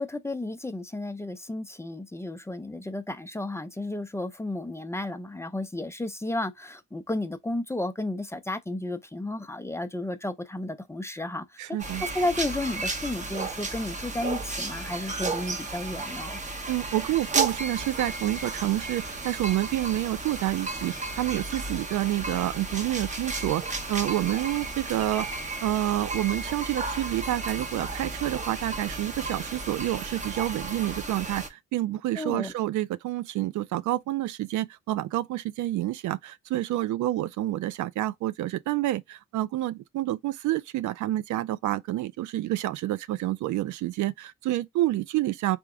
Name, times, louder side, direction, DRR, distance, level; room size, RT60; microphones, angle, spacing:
voice 1, 0.0-11.6 12.0-16.3 32.2-32.5, left 2 dB, 10° left, 0.5 m, -32 dB
voice 2, 11.6-12.0 16.7-25.3 25.6-45.6, right 15 dB, 75° right, 0.5 m, -28 dB
sound 1, 11.8-31.5, right 3 dB, 25° right, 0.9 m, -33 dB
3.5 x 2.9 x 3.6 m
cardioid pair, 90°, 30 cm